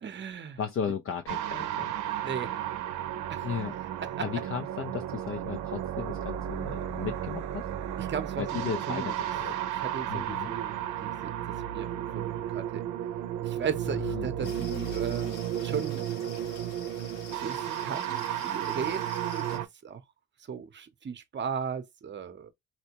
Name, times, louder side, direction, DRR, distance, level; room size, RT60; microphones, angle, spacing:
voice 1, 0.0-0.6 2.2-2.6 3.3-3.5 8.0-8.6 8.9-9.2 9.8-11.3 11.6-12.8 13.4-16.2 17.3-20.0 20.5-22.5, right 7 dB, 35° right, 0.7 m, -37 dB
voice 2, 0.6-1.9 3.4-3.7 4.2-7.6 8.4-9.6 10.1-10.5 13.9-14.6, left 7 dB, 45° left, 0.5 m, -35 dB
sound 1, 1.3-19.7, right 11 dB, 90° right, 0.6 m, -33 dB
sound 2, 14.4-19.6, left 4 dB, 85° left, 2.0 m, -46 dB
4.3 x 2.1 x 2.8 m
cardioid pair, 90°, 30 cm